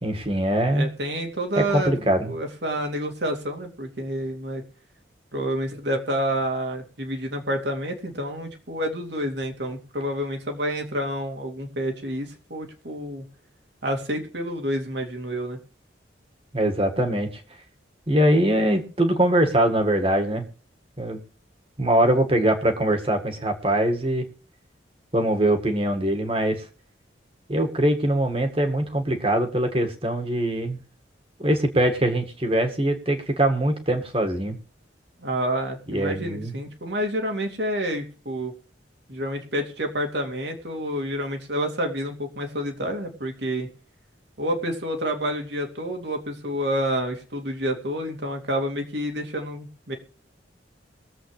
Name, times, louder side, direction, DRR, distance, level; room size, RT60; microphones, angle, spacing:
voice 1, 0.0-0.9 1.7-2.3 16.5-17.3 18.1-20.5 21.0-21.2 21.8-24.3 25.1-26.6 27.5-30.8 31.4-34.6 35.9-36.5, right 1 dB, 30° right, 5 dB, 1.9 m, -22 dB
voice 2, 0.7-1.9 2.2-4.6 5.3-13.2 13.8-15.6 35.2-38.5 39.1-43.7 44.4-49.9, equal, 65° right, 3 dB, 2.6 m, -28 dB
22.0 x 7.9 x 3.3 m, 0.40 s
head